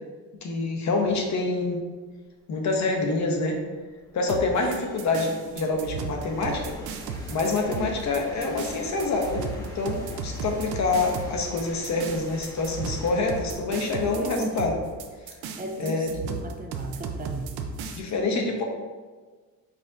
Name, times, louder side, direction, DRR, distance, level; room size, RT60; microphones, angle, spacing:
voice 1, 0.4-1.8 2.5-3.6 4.1-6.8 7.3-14.8 15.8-16.1 18.0-18.6, left 3 dB, 50° left, 2 dB, 0.9 m, -26 dB
sound 1, 2.1-2.2 2.8-17.6, equal, 10° left, 1.0 m, -45 dB
sound 2, 4.3-18.0, right 5 dB, 90° right, 0.6 m, -35 dB
voice 2, 14.1-14.7 15.6-18.0, right 2 dB, 25° right, 2 dB, 0.4 m, -36 dB
5.0 x 4.1 x 2.4 m, 1.4 s
cardioid pair, 95°, 36 cm